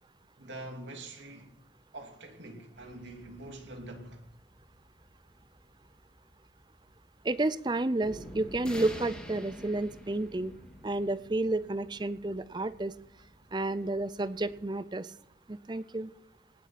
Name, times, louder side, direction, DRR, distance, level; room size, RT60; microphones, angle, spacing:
voice 1, 0.4-1.5 1.9-4.2, right 1 dB, 90° right, 2.8 m, -45 dB
sound 1, 2.8-14.6, equal, 5° left, 2.5 m, -49 dB
voice 2, 7.2-10.6 10.8-13.0 13.5-15.1 15.5-16.1, right 2 dB, 25° right, 0.5 m, -31 dB
18.5 x 7.2 x 5.8 m
head